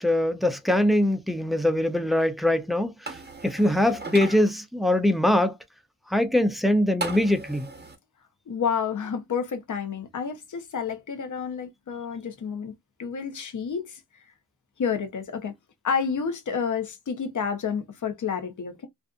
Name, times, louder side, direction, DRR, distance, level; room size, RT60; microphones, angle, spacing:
voice 1, 0.0-5.6 6.1-7.7, left 1 dB, ahead, 0.4 m, -23 dB
sound 1, 3.1-4.4 7.0-8.0, right 3 dB, 25° right, 1.0 m, -36 dB
voice 2, 8.5-12.7 13.0-14.0 14.8-15.5 15.8-18.9, left 6 dB, 55° left, 0.8 m, -29 dB
2.5 x 2.4 x 2.4 m
cardioid pair, 90°, 36 cm